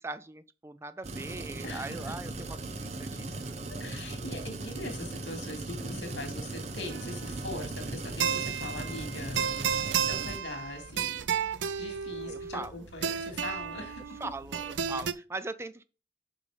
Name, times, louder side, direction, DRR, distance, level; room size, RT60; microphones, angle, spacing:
voice 1, 0.0-3.6 12.3-12.8 14.2-15.8, right 3 dB, 15° right, 0.3 m, -40 dB
sound 1, 1.0-10.4, right 2 dB, 40° right, 0.9 m, -38 dB
voice 2, 1.6-2.1 3.7-11.3 11.8-14.0, left 2 dB, 85° left, 2.5 m, -41 dB
sound 2, 6.9-15.1, right 7 dB, 90° right, 0.6 m, -33 dB
6.8 x 5.3 x 5.0 m
head